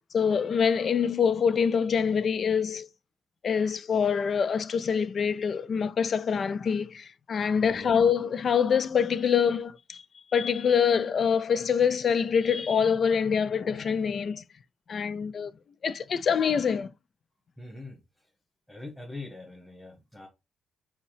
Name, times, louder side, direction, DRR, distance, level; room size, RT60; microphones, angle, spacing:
voice 1, 0.0-2.9 3.4-10.0 10.3-14.4 14.9-15.5 15.8-16.9, left 6 dB, 50° left, 0.3 m, -25 dB
voice 2, 7.5-7.9 17.6-18.3 18.7-20.3, left 2 dB, 5° left, 1.6 m, -43 dB
4.5 x 2.9 x 3.1 m
figure-of-eight pair, 40°, 0 cm